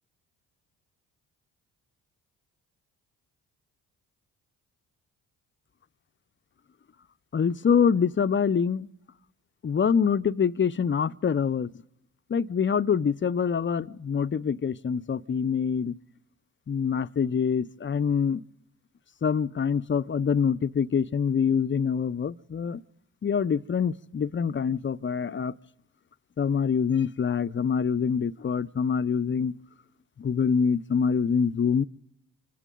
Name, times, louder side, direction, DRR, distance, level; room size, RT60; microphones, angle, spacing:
voice 1, 7.3-8.9 9.6-11.7 12.3-16.0 16.7-18.4 19.2-22.8 23.2-25.5 26.4-29.5 30.2-31.8, left 6 dB, 30° left, 0.7 m, -25 dB
28.0 x 25.5 x 3.8 m
hypercardioid pair, 50°, 41 cm